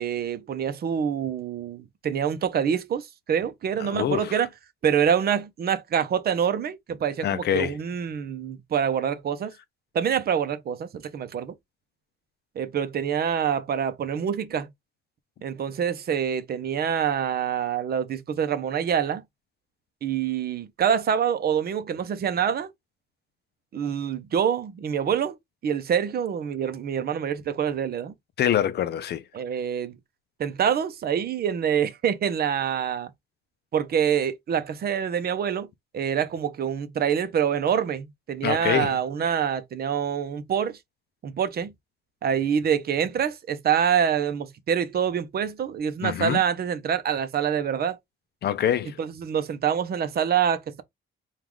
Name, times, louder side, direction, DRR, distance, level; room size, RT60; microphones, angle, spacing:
voice 1, 0.0-4.5 4.8-9.5 9.9-11.5 12.6-14.7 15.4-19.2 20.0-22.7 23.7-25.4 25.6-28.1 29.3-29.9 30.4-33.1 33.7-35.7 35.9-40.8 41.2-41.7 42.2-48.0 49.0-50.8, right 8 dB, 50° right, 0.6 m, -26 dB
voice 2, 3.8-4.4 7.2-7.8 28.4-29.2 38.4-39.0 46.0-46.4 48.4-49.0, left 10 dB, 50° left, 0.4 m, -25 dB
4.6 x 2.4 x 3.6 m
cardioid pair, 140°, 21 cm